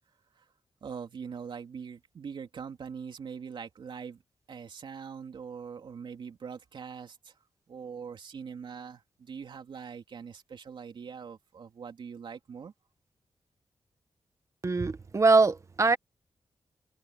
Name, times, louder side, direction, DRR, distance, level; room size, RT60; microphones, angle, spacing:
voice 1, 0.8-4.2 4.5-7.3 7.7-12.7, right 6 dB, 75° right, 3.2 m, -42 dB
voice 2, 14.6-16.0, right 3 dB, 40° right, 1.3 m, -23 dB
wide cardioid pair, 110°, 8 cm